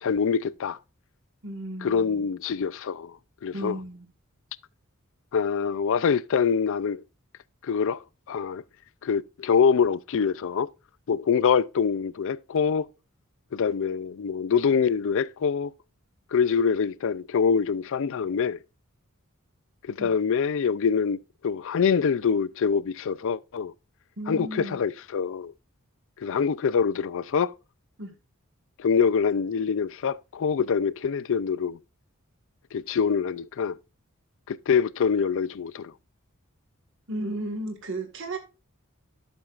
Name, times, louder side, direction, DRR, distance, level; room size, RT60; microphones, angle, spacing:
voice 1, 0.0-0.8 1.8-3.2 3.4-3.8 5.3-7.0 7.6-8.6 9.0-10.7 11.1-12.9 13.5-15.7 16.3-18.6 19.8-23.7 24.3-25.5 26.2-27.5 28.8-31.8 32.7-33.8 34.5-35.9, left 6 dB, 65° left, 0.4 m, -25 dB
voice 2, 1.4-2.2 3.5-4.1 20.0-20.1 24.2-24.8 28.0-28.2 37.1-38.4, right 1 dB, 60° right, 1.7 m, -34 dB
12.0 x 7.1 x 2.4 m
head